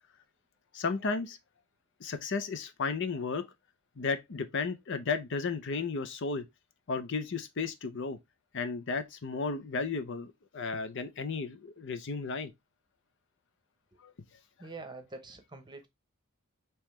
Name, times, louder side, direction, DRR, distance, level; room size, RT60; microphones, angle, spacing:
voice 1, 0.7-1.4 2.0-3.5 4.0-6.4 6.9-8.2 8.5-12.5 14.0-14.1, left 4 dB, 60° left, 0.6 m, -34 dB
voice 2, 14.6-15.9, right 3 dB, 20° right, 0.8 m, -45 dB
5.5 x 3.0 x 3.1 m
head